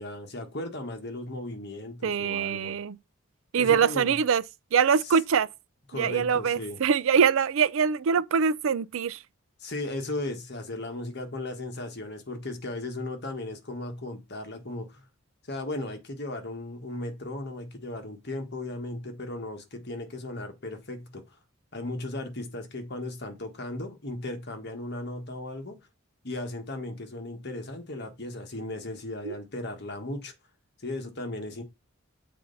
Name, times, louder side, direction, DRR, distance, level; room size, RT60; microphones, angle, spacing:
voice 1, 0.0-2.7 3.6-4.1 5.0-5.2 5.9-6.8 9.6-15.1 15.5-21.2 21.7-25.8 26.2-30.3 30.8-31.6, left 2 dB, 50° left, 1.5 m, -36 dB
voice 2, 2.0-3.0 3.5-4.4 4.7-5.5 5.9-9.2 29.2-29.4, right 6 dB, 70° right, 0.4 m, -23 dB
7.6 x 4.3 x 4.0 m
head